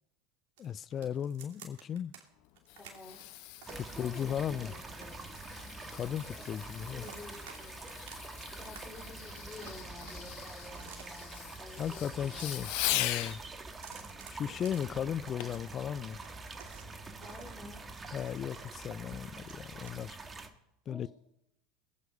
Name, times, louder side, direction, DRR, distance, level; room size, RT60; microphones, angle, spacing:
voice 1, 0.6-2.1 4.0-4.7 5.9-7.0 11.8-13.4 14.3-16.2 18.1-20.2 20.9-21.1, left 9 dB, 40° left, 0.4 m, -36 dB
sound 1, 0.6-2.2 2.6-3.9 4.4-6.4 6.7-7.6 7.9-8.8 9.1-11.4 12.0-13.0 13.3-15.6 16.0-18.8 19.1-19.9, right 7 dB, 65° right, 2.8 m, -54 dB
Fireworks, 2.4-13.4 15.4-15.7 16.3-16.4, left 15 dB, 65° left, 0.9 m, -41 dB
voice 2, 2.8-3.2 3.7-5.2 6.3-6.5 6.9-7.8 8.5-12.8 15.4-15.5 17.2-17.8 20.9-21.1, left 2 dB, 20° left, 3.7 m, -51 dB
sound 2, 3.7-20.5, right 3 dB, 25° right, 1.7 m, -46 dB
22.0 x 8.3 x 5.3 m
hypercardioid pair, 80°, 0 cm